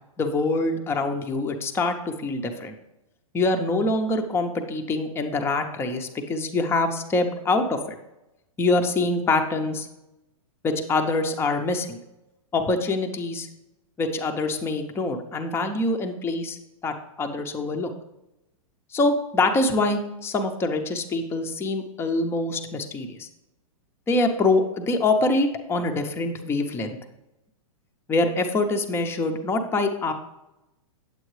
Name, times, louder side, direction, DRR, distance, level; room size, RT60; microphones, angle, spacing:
voice 1, 0.2-2.7 3.3-7.8 8.6-9.9 10.6-12.0 12.5-13.5 14.0-16.6 16.8-17.9 18.9-23.3 24.1-27.0 28.1-30.1, left 2 dB, 15° left, 5 dB, 0.7 m, -25 dB
9.0 x 7.8 x 3.2 m, 0.93 s
hypercardioid pair, 135°, 18 cm